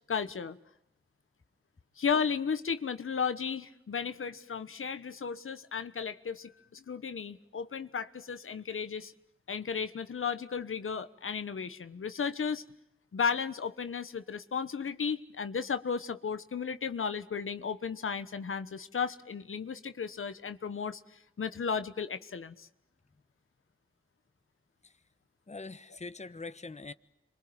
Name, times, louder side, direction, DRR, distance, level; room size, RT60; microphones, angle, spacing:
voice 1, 0.1-0.6 2.0-9.1 9.5-12.6 13.1-22.7, left 6 dB, 85° left, 1.2 m, -34 dB
voice 2, 25.5-26.9, left 3 dB, 35° left, 1.2 m, -43 dB
27.5 x 24.0 x 8.8 m
wide cardioid pair, 60°, 21 cm